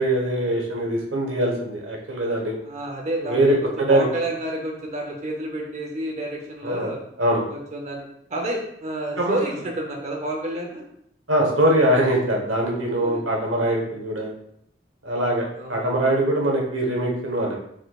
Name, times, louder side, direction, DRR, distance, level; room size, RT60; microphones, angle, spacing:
voice 1, 0.0-2.6 3.2-4.1 6.6-7.4 9.2-9.4 11.3-14.3 15.0-17.6, right 1 dB, 85° right, 0 dB, 1.1 m, -22 dB
voice 2, 2.6-3.4 3.9-7.0 7.5-8.1 8.3-10.9 12.9-13.2 15.6-16.0, right 1 dB, 35° right, 0 dB, 0.6 m, -30 dB
4.5 x 4.4 x 2.3 m, 0.73 s
head